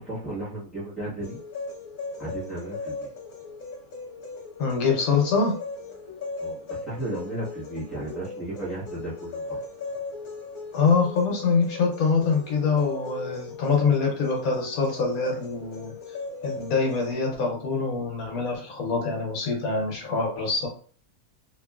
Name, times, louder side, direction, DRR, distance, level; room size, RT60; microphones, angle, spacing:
voice 1, 0.0-1.4 2.2-3.1 6.4-9.6, right 1 dB, ahead, -6 dB, 1.0 m, -34 dB
sound 1, 1.2-17.1, left 3 dB, 55° left, 0.5 m, -38 dB
voice 2, 4.6-5.6 10.7-16.0 16.4-20.7, left 4 dB, 70° left, 1 dB, 1.1 m, -24 dB
2.9 x 2.7 x 2.3 m, 0.43 s
omnidirectional pair, 1.6 m